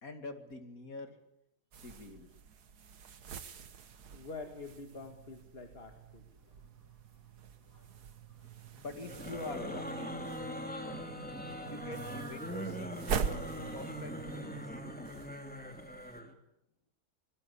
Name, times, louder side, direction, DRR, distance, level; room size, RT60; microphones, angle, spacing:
voice 1, 0.0-1.2 1.8-2.3 6.4-6.8 7.1-10.5 11.7-13.4 13.7-14.6, left 3 dB, 60° left, 7 dB, 2.8 m, -46 dB
sound 1, 1.7-16.2, right 7 dB, 90° right, 1.8 m, -44 dB
voice 2, 4.1-6.2, left 3 dB, 40° left, 5 dB, 2.3 m, -46 dB
sound 2, 9.0-16.3, equal, 5° left, 2.7 m, -41 dB
25.5 x 20.0 x 8.5 m, 0.78 s
omnidirectional pair, 1.6 m